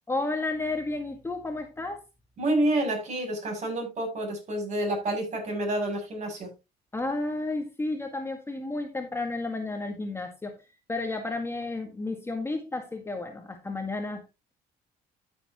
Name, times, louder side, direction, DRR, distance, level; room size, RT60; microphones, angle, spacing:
voice 1, 0.1-2.0 6.9-14.2, left 2 dB, 15° left, 1.8 m, -32 dB
voice 2, 2.4-6.5, right 1 dB, 45° right, 7.7 m, -28 dB
13.5 x 7.3 x 3.1 m
cardioid pair, 110°, 17 cm